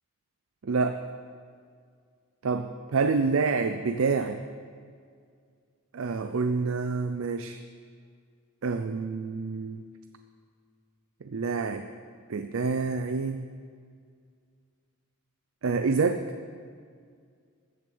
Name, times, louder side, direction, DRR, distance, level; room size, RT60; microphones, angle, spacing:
voice 1, 0.6-1.0 2.4-4.4 5.9-7.6 8.6-9.8 11.2-11.9 12.3-13.4 15.6-16.3, right 4 dB, 70° right, 8 dB, 0.5 m, -27 dB
13.5 x 7.0 x 6.9 m, 2.1 s
head